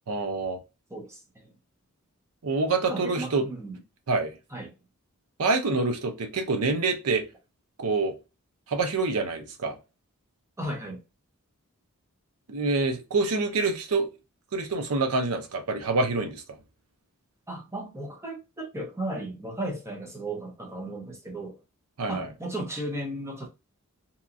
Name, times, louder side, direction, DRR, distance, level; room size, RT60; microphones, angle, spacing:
voice 1, 0.1-0.6 2.4-3.4 4.1-4.3 5.4-7.2 7.8-8.2 8.7-9.8 12.5-14.1 14.5-16.4 22.0-22.3, right 3 dB, 75° right, 0.6 m, -26 dB
voice 2, 0.9-1.5 2.9-3.8 4.5-4.7 10.6-11.0 17.5-21.6 22.1-23.5, right 1 dB, 10° right, 0.7 m, -35 dB
2.8 x 2.3 x 2.5 m
head